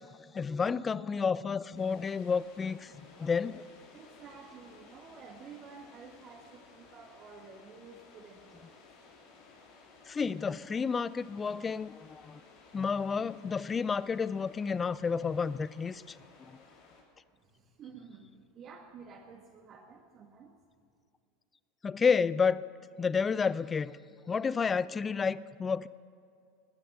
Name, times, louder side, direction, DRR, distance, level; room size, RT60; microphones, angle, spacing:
voice 1, 0.3-2.9 3.2-3.6 10.1-12.4 12.7-16.2 21.8-22.7 23.0-24.0 24.3-25.9, left 5 dB, 25° left, 0.5 m, -30 dB
sound 1, 1.7-17.0, left 4 dB, 60° left, 3.1 m, -57 dB
voice 2, 3.9-8.8 17.3-20.5, right 5 dB, 40° right, 1.7 m, -51 dB
20.5 x 10.0 x 6.6 m
hypercardioid pair, 80°, 0 cm